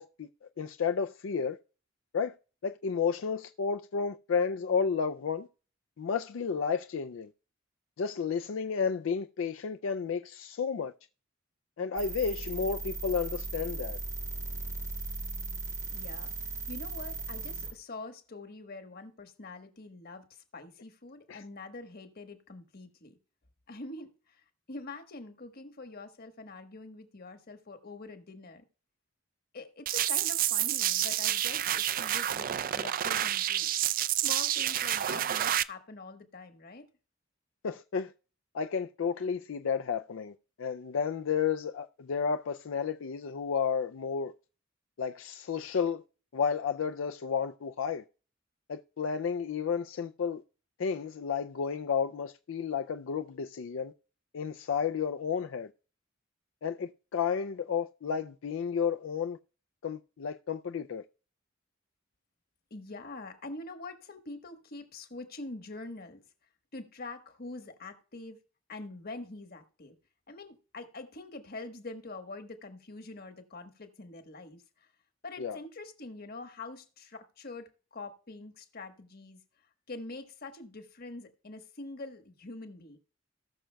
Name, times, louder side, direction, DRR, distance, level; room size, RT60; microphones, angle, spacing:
voice 1, 0.0-1.6 2.1-2.3 2.6-5.5 6.0-7.3 8.0-10.9 11.8-14.0 21.3-21.4 37.6-38.1 38.5-44.3 45.0-46.0 46.3-48.0 48.7-50.4 50.8-53.9 54.3-55.7 56.6-59.4 59.8-61.0 75.4-75.6, left 6 dB, 80° left, 0.4 m, -32 dB
sound 1, 12.0-17.7, right 3 dB, 15° right, 0.8 m, -37 dB
voice 2, 15.9-16.3 16.7-23.2 23.7-24.4 24.7-28.6 29.5-33.7 34.2-36.9 62.7-66.2 66.7-68.4 68.7-70.0 70.3-74.9 75.2-79.4 79.9-83.0, left 2 dB, 50° left, 1.3 m, -45 dB
sound 2, 29.9-35.6, right 12 dB, 45° right, 0.3 m, -29 dB
18.5 x 6.3 x 2.3 m
head